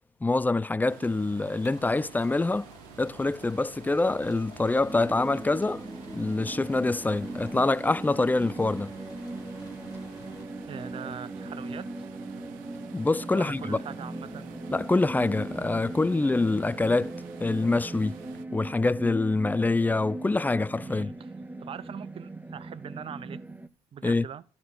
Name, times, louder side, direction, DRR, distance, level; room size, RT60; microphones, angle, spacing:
voice 1, 0.2-2.7 3.0-5.8 6.1-8.9 12.9-13.8 14.7-17.1 17.4-18.2 18.5-21.1 24.0-24.2, left 3 dB, 10° left, 0.5 m, -25 dB
sound 1, 0.9-18.5, right 13 dB, 80° right, 0.8 m, -50 dB
sound 2, 1.6-10.5, left 4 dB, 30° left, 3.8 m, -53 dB
sound 3, 4.9-23.7, right 2 dB, 10° right, 0.9 m, -39 dB
voice 2, 10.7-11.9 13.3-14.5 16.2-16.3 20.8-21.3 21.6-23.4 23.9-24.4, right 8 dB, 40° right, 0.7 m, -42 dB
13.0 x 4.3 x 7.7 m
supercardioid pair, 75°, 14 cm